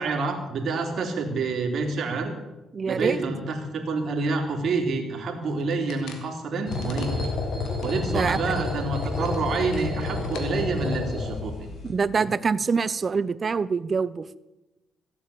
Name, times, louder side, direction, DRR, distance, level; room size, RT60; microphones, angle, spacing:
voice 1, 0.0-2.3 2.9-7.1 7.8-11.5 12.2-12.3, right 3 dB, 60° right, 3 dB, 3.2 m, -28 dB
voice 2, 2.7-3.2 8.1-8.4 11.8-14.4, right 5 dB, 40° right, 18 dB, 0.6 m, -25 dB
sound 1, 5.4-7.9 8.4-8.5 8.8-10.5, left 6 dB, 85° left, 2.4 m, -47 dB
sound 2, 6.7-11.9, left 3 dB, 55° left, 6.3 m, -30 dB
15.5 x 8.6 x 8.5 m, 1.0 s
cardioid pair, 90°, 0 cm